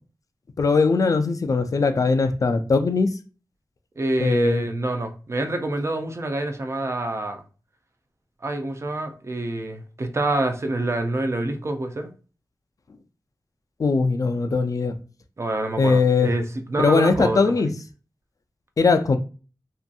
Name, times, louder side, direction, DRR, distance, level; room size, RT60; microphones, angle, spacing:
voice 1, 0.6-3.1 4.2-4.6 13.8-14.9 15.8-16.3 16.8-17.7 18.8-19.2, left 4 dB, 55° left, 0.3 m, -20 dB
voice 2, 4.0-7.4 8.4-12.1 15.4-17.7, right 2 dB, 40° right, 0.5 m, -27 dB
2.6 x 2.5 x 2.3 m
wide cardioid pair, 85°, 7 cm